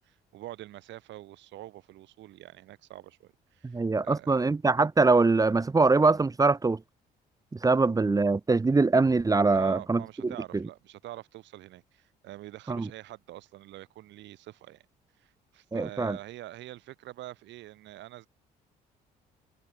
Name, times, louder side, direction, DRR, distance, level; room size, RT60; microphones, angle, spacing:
voice 1, 0.0-4.4 9.5-14.8 15.2-18.3, right 15 dB, 75° right, 6.6 m, -45 dB
voice 2, 3.6-6.8 7.5-10.6 12.7-12.9 15.7-16.2, right 3 dB, 20° right, 0.7 m, -23 dB
supercardioid pair, 60°, 19 cm